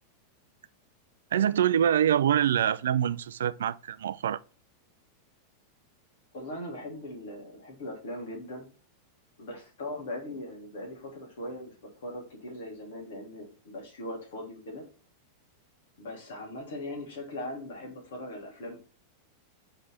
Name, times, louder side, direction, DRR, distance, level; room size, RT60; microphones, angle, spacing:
voice 1, 1.3-4.4, right 9 dB, 65° right, 0.4 m, -25 dB
voice 2, 6.3-8.7 9.4-14.8 16.0-18.8, left 1 dB, 60° left, 2.9 m, -40 dB
5.3 x 4.6 x 5.5 m
figure-of-eight pair, 90°, 0 cm